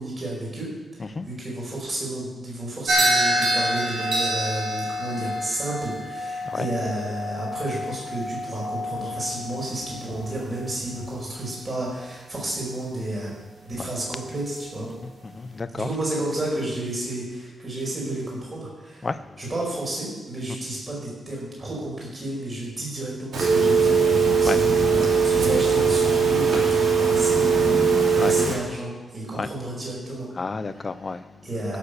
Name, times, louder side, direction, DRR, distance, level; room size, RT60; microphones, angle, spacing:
voice 1, 0.0-13.3 13.6-14.9 15.7-19.1 19.4-30.3 31.0-31.1 31.4-31.8, right 1 dB, 25° right, 5.1 m, -31 dB
sound 1, 2.9-11.2, equal, 55° right, 2.9 m, -27 dB
voice 2, 15.2-15.9 19.0-19.2 24.4-24.6 28.2-28.3 29.3-29.5 30.4-31.3, left 4 dB, 25° left, 0.4 m, -30 dB
Telephone, 23.3-28.5, right 5 dB, 85° right, 3.1 m, -20 dB
16.0 x 6.8 x 6.7 m
wide cardioid pair, 180°, 0 cm